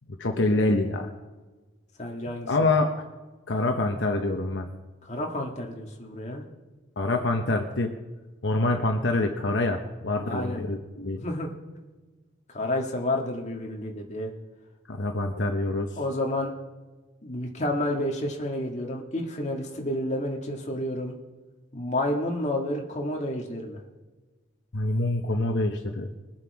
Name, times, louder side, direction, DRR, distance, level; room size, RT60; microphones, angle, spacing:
voice 1, 0.2-1.1 2.5-2.9 3.5-4.7 7.0-7.9 8.4-11.2 14.9-16.0 24.7-26.1, left 2 dB, 65° left, 4 dB, 0.9 m, -26 dB
voice 2, 2.0-2.7 5.0-6.4 10.2-10.6 11.2-11.5 12.5-14.3 16.0-16.5 17.2-21.1 21.7-23.8, left 1 dB, 35° left, 0 dB, 1.8 m, -30 dB
21.0 x 7.5 x 4.8 m, 1.2 s
head